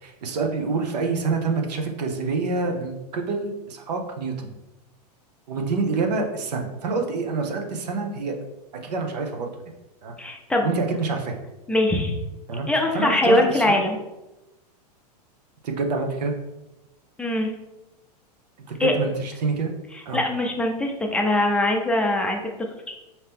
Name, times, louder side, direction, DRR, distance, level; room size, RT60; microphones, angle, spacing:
voice 1, 0.0-4.5 5.5-8.4 8.8-9.5 10.0-10.1 10.6-11.3 12.5-12.7 12.9-13.8 15.6-16.3 18.7-19.7 20.1-20.2, right 4 dB, 85° right, 3 dB, 0.7 m, -27 dB
voice 2, 10.2-10.7 11.7-12.2 12.7-14.0 17.2-17.5 18.8-18.9 20.1-22.4 22.9-23.0, left 1 dB, 5° left, 1 dB, 0.5 m, -22 dB
4.3 x 2.9 x 3.4 m, 0.97 s
hypercardioid pair, 125°, 21 cm